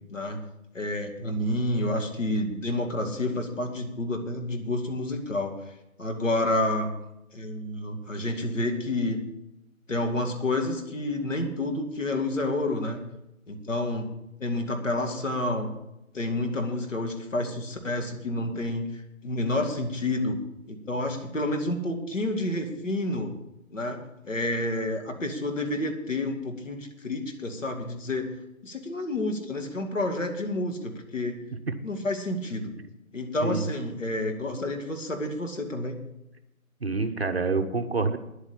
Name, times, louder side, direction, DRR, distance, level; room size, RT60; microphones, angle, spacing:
voice 1, 0.7-5.5 6.0-6.9 7.3-9.2 9.9-13.0 13.5-14.1 14.4-15.7 16.1-18.9 19.2-20.4 20.7-23.3 23.7-28.3 28.6-31.4 31.8-32.7 33.1-36.0, left 1 dB, 60° left, 4 dB, 2.4 m, -29 dB
voice 2, 36.8-38.2, right 3 dB, 45° right, 6 dB, 1.1 m, -27 dB
10.5 x 8.3 x 8.7 m, 0.89 s
figure-of-eight pair, 170°, 42 cm